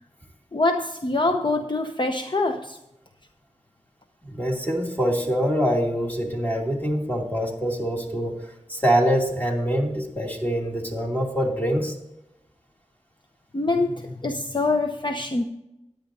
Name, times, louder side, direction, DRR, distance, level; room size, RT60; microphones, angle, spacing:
voice 1, 0.5-2.8 13.5-15.4, left 2 dB, 40° left, 5 dB, 0.7 m, -24 dB
voice 2, 4.2-12.0, equal, 15° left, -1 dB, 2.6 m, -24 dB
14.5 x 10.0 x 2.7 m, 0.93 s
wide cardioid pair, 50°, 13 cm